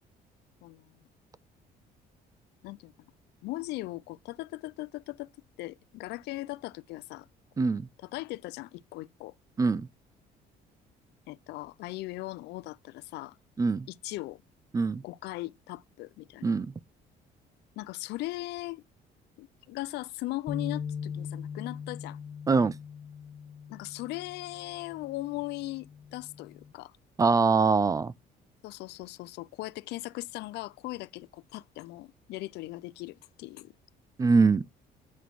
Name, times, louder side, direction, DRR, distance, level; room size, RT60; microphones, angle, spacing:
voice 1, 3.4-5.3 5.6-7.3 7.6-7.7 8.1-9.3 11.3-13.4 13.9-14.4 15.0-16.5 17.8-18.8 19.4-22.2 23.7-26.9 28.6-33.7, left 19 dB, 80° left, 0.4 m, -39 dB
voice 2, 7.6-7.9 9.6-9.9 13.6-13.9 14.7-15.0 16.4-16.7 22.5-22.7 27.2-28.1 34.2-34.6, right 4 dB, 20° right, 0.3 m, -23 dB
sound 1, 20.5-26.7, left 7 dB, 40° left, 0.7 m, -40 dB
8.3 x 4.1 x 4.6 m
cardioid pair, 110°, 17 cm